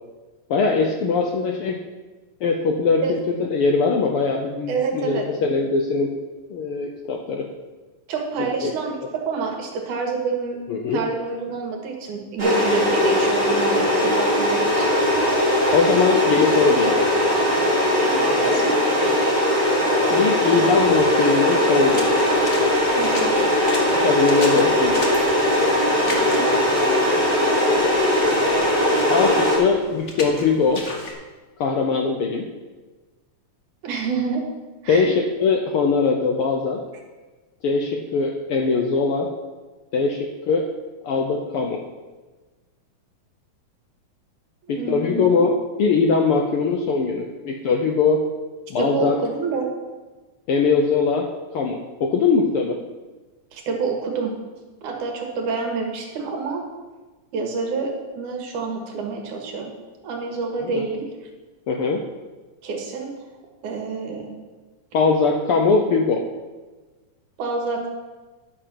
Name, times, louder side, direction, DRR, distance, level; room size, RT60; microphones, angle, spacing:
voice 1, 0.5-1.8 2.4-3.2 3.5-6.1 6.5-7.5 8.4-8.7 10.7-11.0 15.7-17.1 20.1-22.1 24.0-25.0 29.1-30.9 31.6-32.4 34.9-36.8 37.6-39.3 39.9-40.7 41.0-41.8 44.7-48.3 48.7-49.2 50.5-51.3 51.5-52.8 60.6-60.8 61.7-62.0 64.9-66.2, left 4 dB, 75° left, 2 dB, 1.3 m, -21 dB
voice 2, 4.7-5.2 8.1-10.6 10.9-14.9 18.0-19.0 23.0-23.4 26.0-26.6 33.8-34.4 34.8-35.1 44.7-45.4 48.8-49.7 53.5-54.3 54.8-56.6 57.3-59.7 60.0-61.1 62.6-63.1 63.6-64.3 67.4-67.9, right 4 dB, 85° right, 1 dB, 3.1 m, -27 dB
sound 1, 12.4-29.6, left 1 dB, 15° right, 4.1 m, -19 dB
Water / Splash splatter, 21.8-31.1, left 2 dB, 45° left, 0.9 m, -36 dB
11.5 x 6.8 x 5.8 m, 1.3 s
omnidirectional pair, 3.4 m